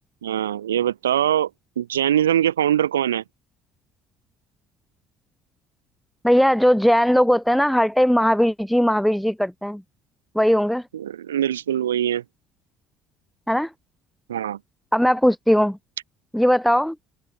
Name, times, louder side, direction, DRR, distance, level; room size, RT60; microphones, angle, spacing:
voice 1, 0.2-1.5 1.8-3.2 10.9-12.2 14.3-14.6, right 10 dB, 80° right, 5.4 m, -22 dB
voice 2, 6.2-9.8 10.4-10.9 13.5-13.7 14.9-15.8 16.3-17.0, equal, ahead, 7.2 m, -19 dB
open air
figure-of-eight pair, 55°, 0 cm